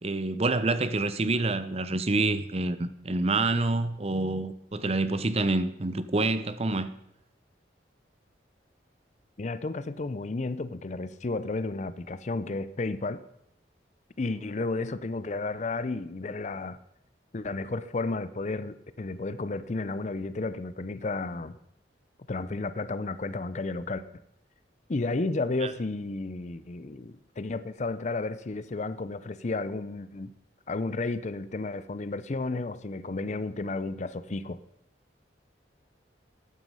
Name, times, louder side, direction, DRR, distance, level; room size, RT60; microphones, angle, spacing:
voice 1, 0.0-6.9 25.6-25.7, right 2 dB, 35° right, 0.7 m, -27 dB
voice 2, 9.4-13.2 14.2-16.8 17.3-21.6 22.3-24.0 24.9-30.3 30.7-34.6, left 3 dB, 40° left, 0.5 m, -32 dB
14.5 x 9.2 x 5.5 m
head